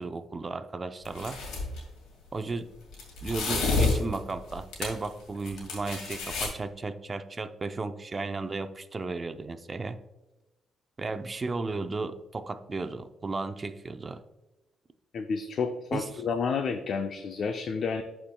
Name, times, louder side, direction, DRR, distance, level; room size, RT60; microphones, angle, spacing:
voice 1, 0.0-1.4 2.3-2.7 3.2-10.0 11.0-14.2 15.9-16.1, right 3 dB, 30° right, 10 dB, 0.6 m, -34 dB
sound 1, 1.1-1.8 2.9-5.1 5.4-6.5, left 3 dB, 85° left, 2.1 m, -29 dB
voice 2, 15.1-18.0, left 5 dB, 60° left, 6 dB, 0.5 m, -30 dB
11.5 x 4.5 x 2.3 m, 1.0 s
cardioid pair, 90°, 0 cm